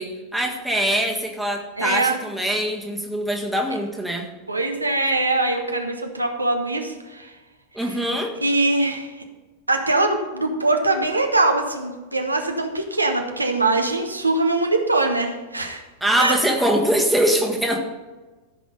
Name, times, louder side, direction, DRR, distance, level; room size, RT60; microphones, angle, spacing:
voice 1, 0.0-4.3 7.7-8.4 16.0-17.8, right 1 dB, 5° right, 1 dB, 1.6 m, -23 dB
voice 2, 1.8-2.2 4.5-7.3 7.9-8.0 8.4-9.2 9.7-15.8 16.2-16.4, right 2 dB, 85° right, 4 dB, 1.1 m, -22 dB
14.0 x 6.0 x 5.5 m, 1.2 s
figure-of-eight pair, 90°, 0 cm